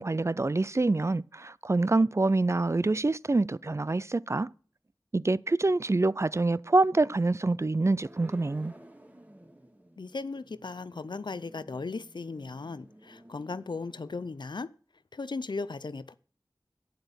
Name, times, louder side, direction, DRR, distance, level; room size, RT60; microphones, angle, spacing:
voice 1, 0.0-4.5 5.1-8.7, right 2 dB, 40° right, 0.4 m, -26 dB
sound 1, 8.0-14.3, right 1 dB, 20° right, 1.7 m, -54 dB
voice 2, 10.0-14.7 15.1-16.1, left 3 dB, 80° left, 0.6 m, -37 dB
9.2 x 7.6 x 6.9 m
wide cardioid pair, 50°, 8 cm